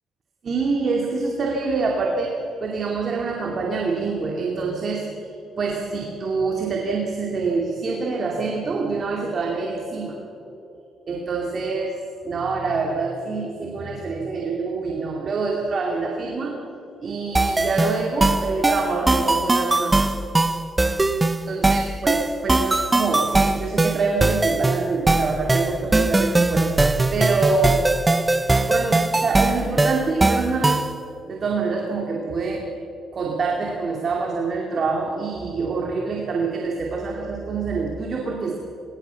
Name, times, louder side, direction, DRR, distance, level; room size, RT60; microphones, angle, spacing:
voice 1, 0.4-2.3 2.6-5.1 5.6-10.2 11.1-11.9 12.2-16.5 17.0-20.1 21.5-27.8 28.6-30.9 31.3-32.6 33.1-38.6, right 4 dB, 50° right, 0 dB, 2.6 m, -26 dB
sound 1, 17.3-31.0, right 2 dB, 20° right, 0.9 m, -20 dB
19.5 x 19.0 x 7.1 m, 2.8 s
cardioid pair, 90°, 0 cm